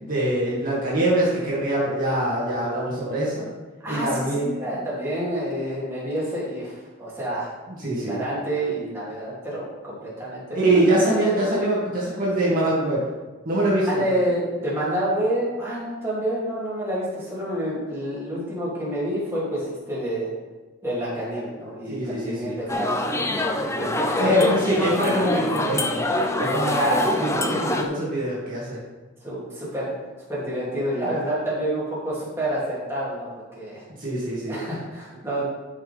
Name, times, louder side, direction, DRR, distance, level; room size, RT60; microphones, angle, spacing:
voice 1, 0.0-3.5 3.9-4.5 7.8-8.2 10.5-13.1 13.5-14.2 21.9-22.5 24.2-26.0 26.4-26.9 27.2-28.8 34.0-34.6, right 1 dB, 45° right, -7 dB, 2.5 m, -23 dB
voice 2, 3.8-7.5 7.9-11.0 13.9-20.3 20.8-23.1 23.6-24.5 26.7-27.3 27.7-28.1 29.2-29.9 30.3-33.8 34.5-35.4, right 1 dB, 15° right, -8 dB, 3.0 m, -28 dB
sound 1, 22.7-27.8, left 2 dB, 15° left, 0.6 m, -25 dB
12.5 x 5.9 x 3.6 m, 1.2 s
head